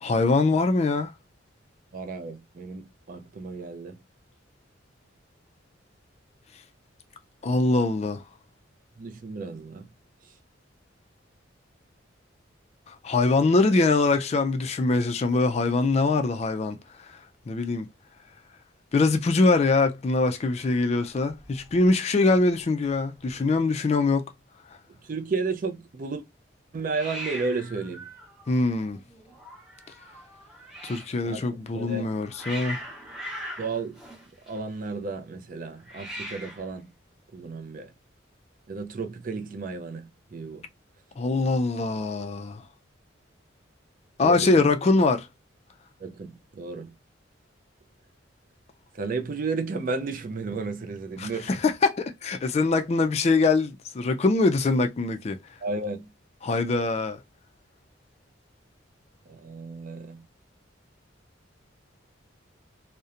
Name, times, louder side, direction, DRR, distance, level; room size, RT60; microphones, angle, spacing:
voice 1, 0.0-1.1 7.4-8.2 12.9-16.8 17.5-17.9 18.9-24.3 28.5-29.0 30.8-32.8 41.2-42.6 44.2-45.3 51.2-55.4 56.4-57.2, left 3 dB, 35° left, 0.3 m, -23 dB
voice 2, 1.9-4.0 9.0-9.9 25.0-26.2 26.7-28.1 31.2-31.4 31.7-32.1 33.6-34.0 34.5-36.9 37.3-37.9 38.7-40.7 44.2-44.7 46.0-46.9 48.9-51.5 55.6-56.1 59.3-60.3, right 4 dB, 45° right, 0.4 m, -33 dB
Hiss, 20.6-21.9 22.2-22.6 22.9-23.0 23.2-23.9 26.9-31.2 31.9-34.9 35.8-36.7, equal, ahead, 0.7 m, -41 dB
2.8 x 2.1 x 2.3 m
head